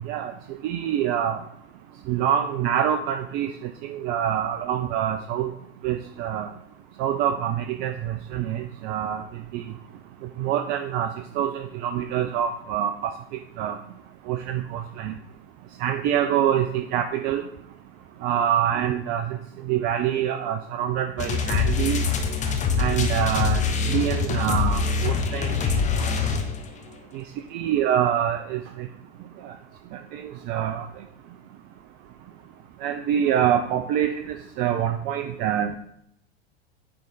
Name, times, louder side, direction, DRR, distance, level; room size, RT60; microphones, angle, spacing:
voice 1, 0.6-1.4 2.1-5.5 5.8-6.5 7.0-9.2 9.5-9.6 10.4-11.1 11.4-13.1 13.6-13.8 14.3-15.1 15.8-17.4 18.2-19.2 19.7-22.0 22.8-26.1 27.1-27.2 27.5-28.9 29.4-29.5 30.1-30.2 30.5-30.9 32.8-35.8, right 10 dB, 30° right, 7 dB, 0.4 m, -25 dB
sound 1, 21.2-26.8, left 5 dB, 20° left, 0.8 m, -24 dB
9.2 x 3.2 x 4.0 m, 0.72 s
figure-of-eight pair, 85°, 34 cm